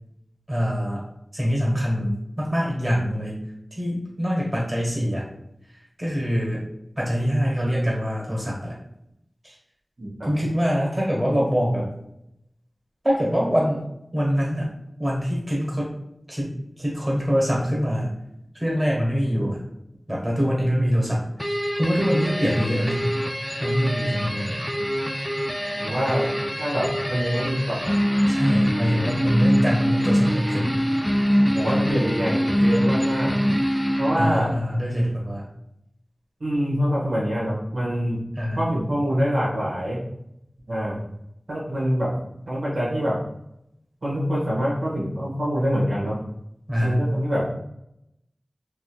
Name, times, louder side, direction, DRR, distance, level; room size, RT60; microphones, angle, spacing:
voice 1, 0.5-1.1 1.3-3.4 3.8-5.3 6.0-6.7 7.0-8.8 9.4-9.5 10.2-11.9 13.0-13.8 14.1-14.7 15.0-16.0 16.3-18.2 18.5-19.6 20.1-23.1 23.6-24.6 28.3-30.8 34.2-35.5 38.4-38.6 46.7-47.0, equal, 30° right, -4 dB, 1.3 m, -24 dB
voice 2, 10.0-10.3 19.3-19.5 22.7-22.9 25.8-26.3 26.6-27.9 31.5-33.4 34.0-34.5 36.4-38.2 38.5-40.0 40.7-41.0 41.5-42.1 42.5-43.2 44.0-46.2 46.8-47.4, equal, 90° right, -7 dB, 1.3 m, -25 dB
sound 1, 21.4-34.6, equal, 5° left, 0.3 m, -24 dB
3.6 x 2.9 x 2.3 m, 0.79 s
wide cardioid pair, 45°, 0 cm